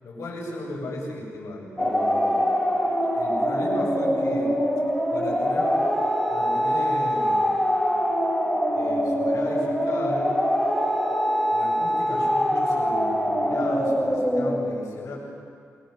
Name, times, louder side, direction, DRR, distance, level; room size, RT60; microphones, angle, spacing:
voice 1, 0.0-2.5 3.1-4.6 5.1-5.8 6.3-7.6 8.7-10.3 11.3-15.2, left 1 dB, 80° left, -1 dB, 7.4 m, -35 dB
sound 1, 1.8-14.6, equal, 5° left, 4.0 m, -23 dB
28.0 x 22.0 x 6.7 m, 2.2 s
cardioid pair, 100°, 5 cm